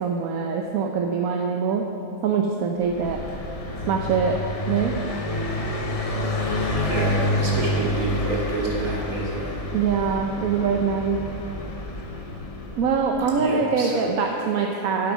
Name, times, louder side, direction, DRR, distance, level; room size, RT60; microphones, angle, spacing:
voice 1, 0.0-1.9 2.2-3.2 3.9-4.4 4.7-5.0 9.7-11.2 12.8-15.1, right 5 dB, 85° right, 2 dB, 1.2 m, -23 dB
Car passing by, 2.8-13.4, left 1 dB, 30° left, 0.9 m, -28 dB
voice 2, 6.4-9.5 13.3-14.1, right 2 dB, 65° right, -5 dB, 2.9 m, -29 dB
13.0 x 8.3 x 6.1 m, 3.0 s
omnidirectional pair, 1.5 m